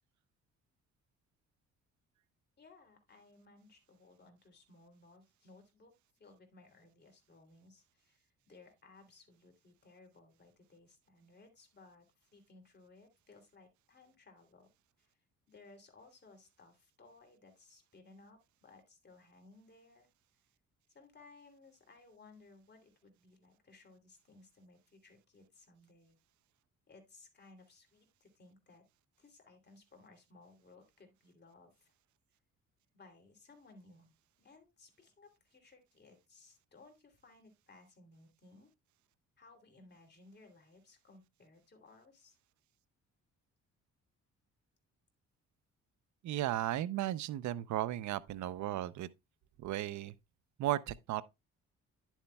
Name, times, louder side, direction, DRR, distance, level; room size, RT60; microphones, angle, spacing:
voice 1, 2.6-5.9 6.2-14.7 15.0-15.2 15.5-20.1 20.9-26.2 26.9-28.8 29.2-31.9 32.9-38.7 39.4-42.4, left 3 dB, 35° left, 2.9 m, -61 dB
voice 2, 46.2-49.1 49.6-50.1 50.6-51.2, right 13 dB, 70° right, 0.6 m, -35 dB
10.5 x 7.2 x 2.3 m
cardioid pair, 90°, 30 cm